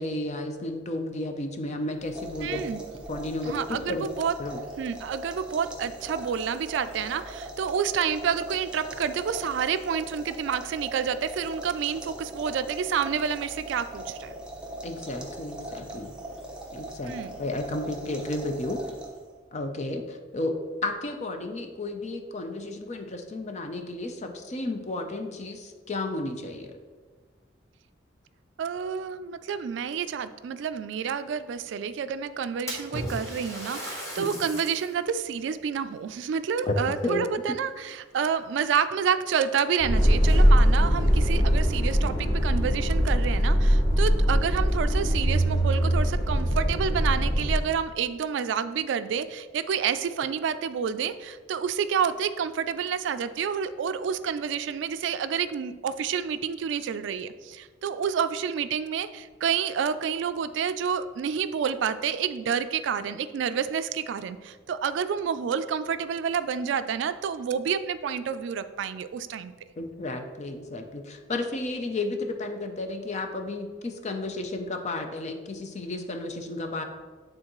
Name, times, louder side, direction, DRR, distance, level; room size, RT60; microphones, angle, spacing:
voice 1, 0.0-2.6 3.1-4.1 4.4-4.6 14.8-16.1 16.7-17.1 17.4-18.8 19.5-20.5 20.8-26.7 34.2-34.5 36.7-36.8 37.0-37.3 69.8-76.8, left 2 dB, 40° left, 5 dB, 0.6 m, -32 dB
sound 1, 2.0-19.4, right 1 dB, 5° right, 0.8 m, -40 dB
voice 2, 2.4-2.8 3.4-4.3 4.8-14.3 17.0-17.4 28.6-69.5, right 7 dB, 70° right, 12 dB, 0.3 m, -29 dB
Splash splatter, 32.7-35.0 35.5-35.6 36.5-37.5 37.9-38.3 39.1-39.2 39.7-39.8 42.0-42.1 42.4-42.5 43.1-43.2 43.6-43.7 44.4-45.0, equal, 15° left, 1.4 m, -37 dB
sound 2, 39.8-47.5, equal, 60° left, 1.4 m, -22 dB
8.8 x 3.7 x 3.0 m, 1.4 s
head